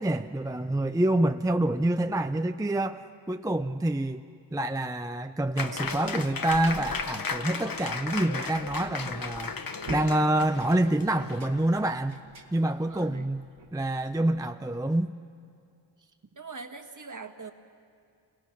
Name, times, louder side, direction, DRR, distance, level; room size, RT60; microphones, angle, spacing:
voice 1, 0.0-4.2 4.5-9.6 9.9-12.2 12.5-15.1, right 1 dB, 10° right, 8 dB, 0.5 m, -27 dB
Applause, 5.6-11.9, left 5 dB, 50° left, 1.2 m, -35 dB
sound 1, 5.7-14.4, right 4 dB, 75° right, 1.8 m, -48 dB
voice 2, 12.9-13.3 16.3-17.5, right 4 dB, 40° right, 7 dB, 1.6 m, -42 dB
29.0 x 22.5 x 6.0 m, 2.4 s
cardioid pair, 70°, 44 cm